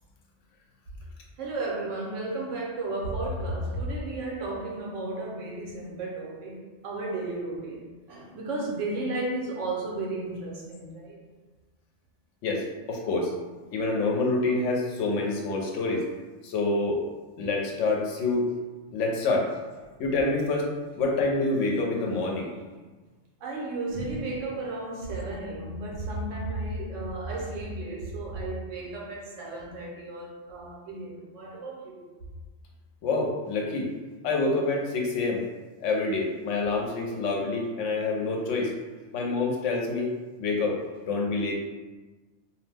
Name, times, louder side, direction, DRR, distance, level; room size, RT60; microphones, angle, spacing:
voice 1, 1.4-11.2 19.8-20.0 23.4-32.1, right 2 dB, 85° right, 1.0 m, -33 dB
voice 2, 12.4-13.3 13.7-16.0 16.4-17.0 17.4-18.5 18.9-19.5 20.0-20.7 21.0-22.5 33.0-33.9 34.2-35.4 35.8-38.7 39.1-40.1 40.4-40.8 41.0-41.5, left 3 dB, 80° left, 0.9 m, -27 dB
2.6 x 2.0 x 3.2 m
omnidirectional pair, 1.2 m